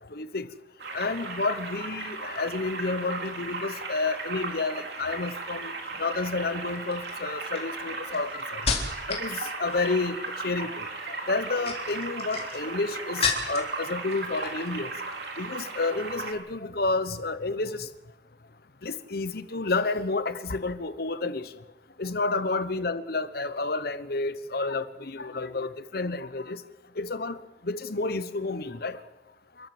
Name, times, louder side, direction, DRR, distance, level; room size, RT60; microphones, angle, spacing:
voice 1, 0.1-0.5 0.9-5.7 6.0-8.6 9.1-10.2 10.4-14.9 15.4-17.9 18.8-21.5 22.0-26.6 27.0-27.4 27.6-29.0, left 3 dB, 55° left, 13 dB, 1.0 m, -30 dB
sound 1, 0.8-16.3, right 3 dB, 60° right, 3.9 m, -36 dB
sound 2, 5.8-6.2 6.9-9.3 9.6-10.1 11.3-13.8 14.1-14.7 15.0-15.3, left 4 dB, 35° left, 3.9 m, -32 dB
28.5 x 14.0 x 7.8 m, 0.99 s
head